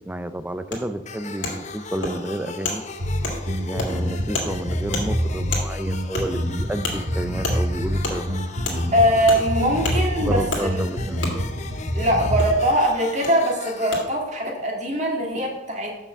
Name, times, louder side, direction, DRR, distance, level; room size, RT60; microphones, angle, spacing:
voice 1, 0.1-2.8 3.6-8.4 10.2-11.3, right 1 dB, 10° right, 11 dB, 0.5 m, -30 dB
Wood, 0.7-0.8 1.4-1.5 2.0-2.1 2.6-2.8 3.2-3.4 3.8-3.9 4.3-4.5 4.9-5.0 5.5-5.6 6.1-6.3 6.8-7.0 7.4-7.6 8.0-8.2 8.6-8.8 9.3-9.4 9.8-10.0 10.5-10.6 11.2-11.3 12.4-12.5 13.2-13.3 13.9-14.0, left 3 dB, 80° left, 2.3 m, -27 dB
sound 1, 1.1-14.0, left 4 dB, 40° left, 0.7 m, -38 dB
Bass guitar, 3.0-12.6, equal, 65° right, 1.9 m, -26 dB
voice 2, 8.9-10.8 11.9-15.9, equal, 40° right, 0 dB, 2.0 m, -22 dB
6.7 x 5.8 x 7.0 m, 0.97 s
head